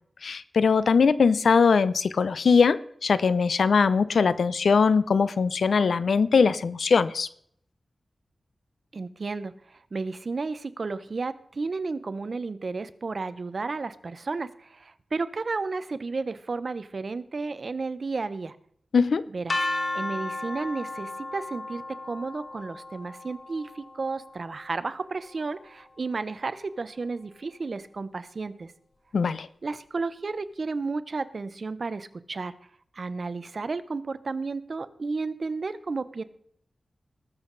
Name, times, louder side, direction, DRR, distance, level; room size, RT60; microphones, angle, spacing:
voice 1, 0.2-7.3 18.9-19.2 29.1-29.5, left 5 dB, 85° left, 0.6 m, -21 dB
voice 2, 8.9-9.5 9.9-18.6 19.3-19.6 19.9-28.7 29.6-32.5 32.9-36.2, right 4 dB, 55° right, 0.8 m, -32 dB
sound 1, 19.5-25.4, left 2 dB, 50° left, 1.5 m, -35 dB
19.5 x 7.3 x 4.0 m
wide cardioid pair, 95°, 0 cm